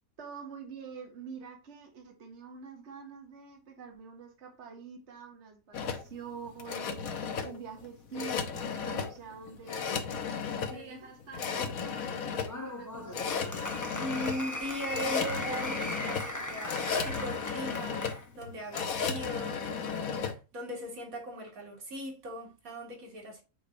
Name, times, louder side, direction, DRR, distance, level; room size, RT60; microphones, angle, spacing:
voice 1, 0.2-10.1 10.4-13.6, right 5 dB, 55° right, 1.5 m, -46 dB
sound 1, 5.7-20.3, left 6 dB, 85° left, 1.4 m, -35 dB
voice 2, 10.7-11.0 14.0-23.4, equal, 85° right, 2.4 m, -39 dB
Applause, 12.5-18.3, left 1 dB, 15° left, 0.9 m, -38 dB
8.0 x 3.3 x 4.1 m
omnidirectional pair, 1.4 m